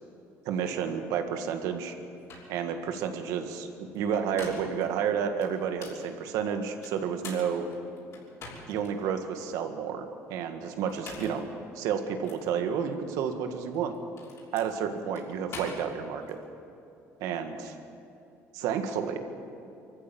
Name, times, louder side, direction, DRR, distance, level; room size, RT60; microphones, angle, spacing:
voice 1, 0.5-1.9 2.5-3.7 3.9-7.7 8.7-10.0 10.3-11.5 11.8-13.9 14.5-16.4 17.2-17.7 18.5-19.2, right 7 dB, 85° right, 6 dB, 1.8 m, -30 dB
sound 1, 1.9-2.0 2.3-2.5 3.9-4.8 5.4-6.0 6.8-8.9 9.4-9.5 10.8-11.5 12.2-12.4 13.6-16.4, left 3 dB, 55° left, 6.1 m, -45 dB
24.5 x 14.5 x 7.7 m, 2.7 s
cardioid pair, 125°, 6 cm